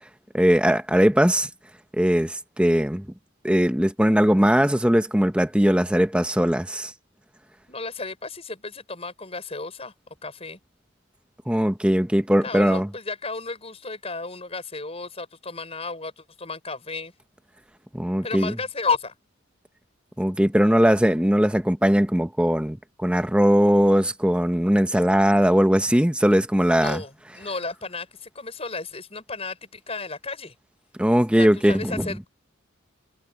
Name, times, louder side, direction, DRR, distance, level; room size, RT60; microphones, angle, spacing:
voice 1, 0.3-1.5 2.0-3.0 3.4-6.9 11.5-12.9 17.9-18.5 20.2-27.0 31.0-32.1, equal, 5° right, 0.9 m, -20 dB
voice 2, 7.7-9.9 10.2-10.6 12.4-17.1 18.2-19.1 26.7-30.5 31.4-32.3, left 4 dB, 30° left, 6.7 m, -33 dB
head